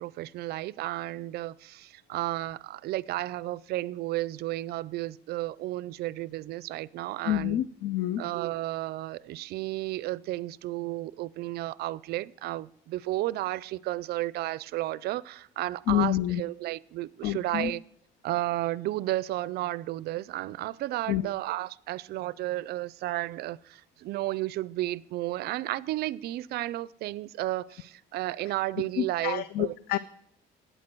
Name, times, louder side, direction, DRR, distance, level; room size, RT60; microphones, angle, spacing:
voice 1, 0.0-7.6 8.2-17.8 18.2-29.7, right 16 dB, 70° right, 0.4 m, -33 dB
voice 2, 7.2-8.2 15.9-16.4 17.2-17.7 21.1-21.3 29.0-30.0, left 13 dB, 70° left, 0.4 m, -28 dB
13.5 x 9.1 x 4.5 m
cardioid pair, 110°, 17 cm